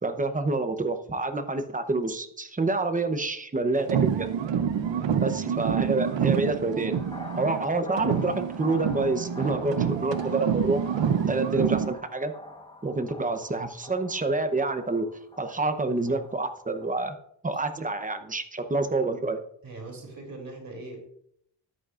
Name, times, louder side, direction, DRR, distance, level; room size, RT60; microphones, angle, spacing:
voice 1, 0.0-4.3 5.2-7.0 7.4-10.8 11.2-12.3 12.8-15.1 15.4-17.2 17.4-19.4, right 3 dB, 20° right, 7 dB, 0.8 m, -27 dB
sound 1, 3.8-7.7 8.0-11.9, right 7 dB, 90° right, 0.8 m, -27 dB
voice 2, 4.8-5.2 19.6-21.1, right 2 dB, 50° right, 1 dB, 3.0 m, -41 dB
sound 2, 6.9-17.1, left 1 dB, 10° left, 1.2 m, -45 dB
13.5 x 11.0 x 2.5 m, 0.69 s
wide cardioid pair, 165°, 43 cm